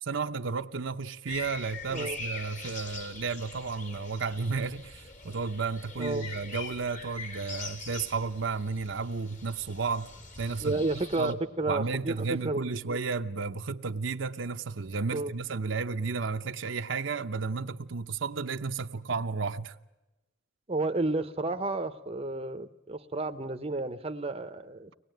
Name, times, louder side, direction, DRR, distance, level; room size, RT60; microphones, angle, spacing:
voice 1, 0.0-10.1 10.4-10.8 11.2-11.4 11.7-19.7, right 4 dB, 70° right, 0.8 m, -33 dB
sound 1, 1.3-11.3, left 3 dB, 40° left, 1.8 m, -43 dB
voice 2, 10.6-13.0 15.1-15.3 20.7-24.9, right 2 dB, 30° right, 0.8 m, -32 dB
24.0 x 19.5 x 9.2 m
head